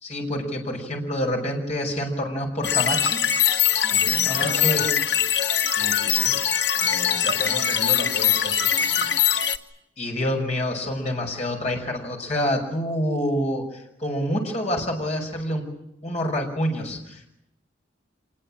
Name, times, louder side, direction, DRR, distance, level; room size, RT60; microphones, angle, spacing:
voice 1, 0.0-3.2 4.2-4.9 10.0-15.7 16.0-17.3, equal, 40° left, 2 dB, 5.7 m, -27 dB
sound 1, 2.6-9.6, left 9 dB, 85° left, 1.4 m, -22 dB
voice 2, 3.9-4.9 5.6-6.4 6.8-9.1, left 1 dB, 60° left, 3 dB, 4.9 m, -34 dB
26.5 x 21.0 x 8.8 m, 0.82 s
head